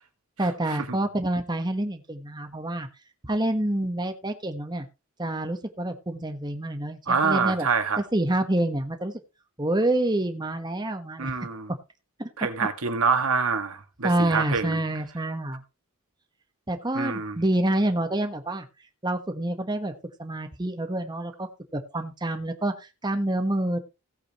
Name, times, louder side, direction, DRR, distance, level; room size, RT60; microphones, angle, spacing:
voice 1, 0.4-2.9 3.2-4.9 5.2-7.7 8.1-9.1 9.6-11.3 12.2-12.3 12.6-12.7 14.0-15.6 16.7-18.7 19.0-19.9 20.2-23.8, right 1 dB, 20° right, 1.3 m, -27 dB
voice 2, 7.1-8.0 11.2-11.7 12.4-14.8 16.9-17.4, right 5 dB, 80° right, 1.9 m, -26 dB
17.0 x 8.7 x 3.1 m
head